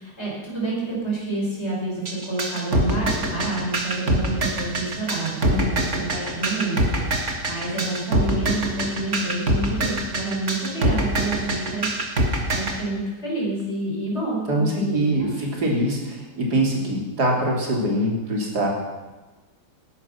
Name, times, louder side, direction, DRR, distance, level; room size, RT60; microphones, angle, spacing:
voice 1, 0.0-15.3, right 2 dB, 35° left, -4 dB, 5.7 m, -29 dB
sound 1, 2.1-12.8, right 1 dB, 40° right, 2.1 m, -24 dB
voice 2, 14.5-18.7, right 1 dB, 55° right, -1 dB, 3.9 m, -23 dB
18.5 x 11.5 x 5.9 m, 1.2 s
omnidirectional pair, 2.0 m